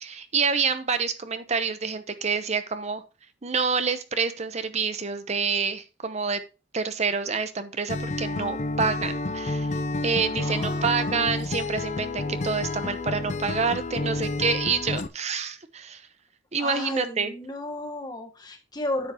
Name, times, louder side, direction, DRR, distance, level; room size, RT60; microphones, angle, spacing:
voice 1, 0.0-3.0 3.4-6.4 6.7-9.7 10.0-16.0 16.5-17.3, right 5 dB, 35° right, 11 dB, 0.9 m, -27 dB
Acoustic guitar, 7.9-15.1, left 2 dB, 40° left, 0.6 m, -30 dB
voice 2, 10.4-11.2 16.6-19.1, left 1 dB, 20° left, 4 dB, 1.6 m, -34 dB
9.6 x 7.9 x 3.0 m, 0.29 s
head